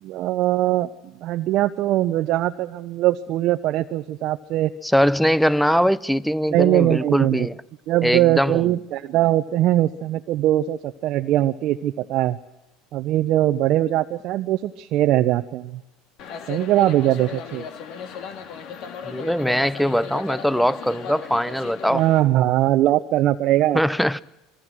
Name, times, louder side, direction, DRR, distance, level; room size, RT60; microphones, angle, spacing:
voice 1, 0.0-4.7 6.5-7.5 7.9-12.4 12.9-15.8 16.5-17.6 21.9-23.8, right 14 dB, 55° right, 0.9 m, -21 dB
voice 2, 4.8-7.5 8.0-8.7 19.0-22.0 23.7-24.2, equal, ahead, 0.7 m, -21 dB
sound 1, 16.2-22.2, left 6 dB, 55° left, 2.7 m, -36 dB
27.0 x 21.0 x 6.4 m
hypercardioid pair, 80°, 0 cm